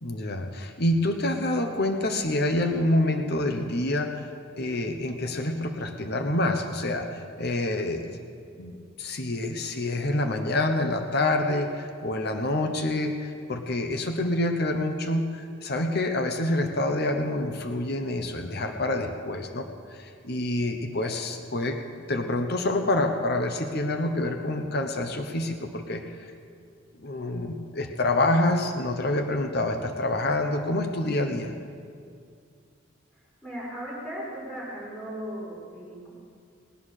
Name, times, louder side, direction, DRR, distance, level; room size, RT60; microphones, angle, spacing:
voice 1, 0.0-8.2 8.6-21.8 22.1-26.3 27.0-31.5, left 1 dB, 50° left, 5 dB, 1.0 m, -27 dB
voice 2, 33.4-36.1, equal, 5° left, -7 dB, 5.1 m, -37 dB
19.5 x 9.4 x 6.6 m, 2.3 s
head